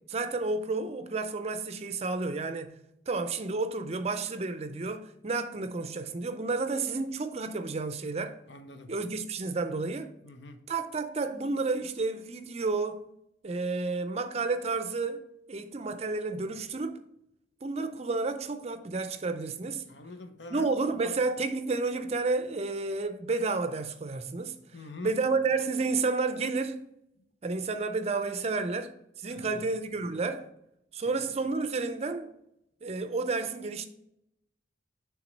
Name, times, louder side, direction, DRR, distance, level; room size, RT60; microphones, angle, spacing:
voice 1, 0.0-2.7 3.1-8.4 8.9-10.1 10.7-13.0 13.4-17.0 17.6-19.9 20.5-24.5 25.0-26.8 27.4-28.9 29.2-30.5 30.9-32.3 32.8-33.9, right 3 dB, 35° right, 0.5 m, -31 dB
voice 2, 8.5-8.9 10.2-10.6 19.9-20.7 24.7-25.2 27.2-27.3 29.3-29.6, left 2 dB, 80° left, 0.8 m, -45 dB
6.1 x 3.5 x 5.2 m
head